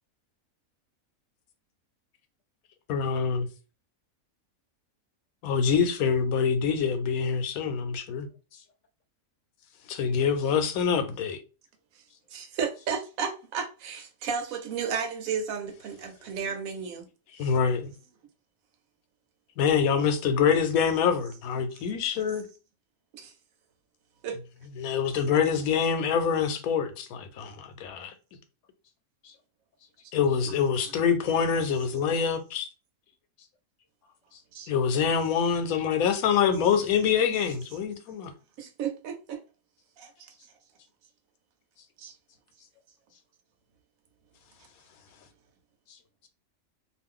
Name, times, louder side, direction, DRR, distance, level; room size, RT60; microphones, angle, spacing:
voice 1, 2.9-3.5 5.4-8.3 9.9-11.4 17.4-17.9 19.6-22.5 24.8-28.1 30.1-32.7 34.7-38.3, left 7 dB, 90° left, 1.1 m, -25 dB
voice 2, 12.3-17.1 17.4-17.5 19.9-20.1 21.9-22.2 23.1-23.3 24.2-24.4 30.4-30.6 31.2-31.3 34.5-34.7 38.6-39.4 42.0-42.1, right 6 dB, 75° right, 1.1 m, -33 dB
voice 3, 34.0-34.4 41.8-41.9 42.6-42.7 43.1-43.2 45.9-46.3, left 7 dB, 70° left, 0.8 m, -58 dB
2.5 x 2.4 x 3.5 m
omnidirectional pair, 1.5 m